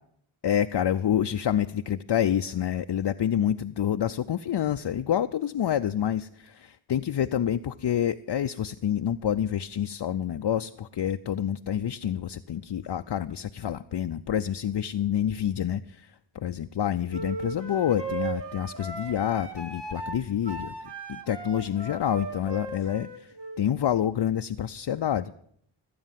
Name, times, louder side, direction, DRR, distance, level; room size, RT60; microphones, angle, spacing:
voice 1, 0.4-20.7 21.1-25.4, left 10 dB, 60° left, 8 dB, 0.6 m, -28 dB
sound 1, 17.1-23.6, right 3 dB, 60° right, 2.4 m, -37 dB
18.0 x 8.7 x 7.4 m, 0.68 s
wide cardioid pair, 50°, 47 cm